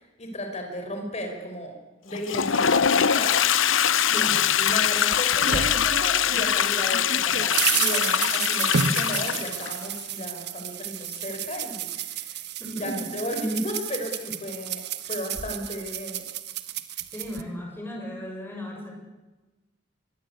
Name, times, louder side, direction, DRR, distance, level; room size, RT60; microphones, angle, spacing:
voice 1, 0.0-1.8 2.0-3.4 4.1-14.8 15.1-16.2, equal, 35° left, 4 dB, 5.7 m, -34 dB
Toilet flush, 2.1-9.8, left 8 dB, 75° left, 0.8 m, -23 dB
voice 2, 4.1-4.5 12.6-13.0 17.1-18.9, equal, 10° left, 0 dB, 7.3 m, -36 dB
sound 1, 4.7-6.5 6.9-17.4, right 7 dB, 55° right, 1.4 m, -31 dB
24.5 x 21.0 x 8.4 m, 1.1 s
head